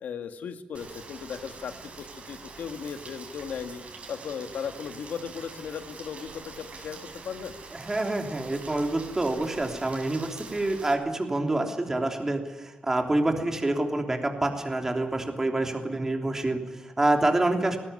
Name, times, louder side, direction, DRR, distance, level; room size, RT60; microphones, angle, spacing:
voice 1, 0.0-3.8 4.1-7.0 7.2-7.6, left 7 dB, 90° left, 8 dB, 1.9 m, -37 dB
Rain, 0.7-10.9, right 4 dB, 50° right, 5.3 m, -45 dB
voice 2, 7.7-17.8, right 2 dB, 20° right, 3 dB, 3.2 m, -27 dB
20.0 x 17.5 x 9.9 m, 1.1 s
wide cardioid pair, 135°, 3 cm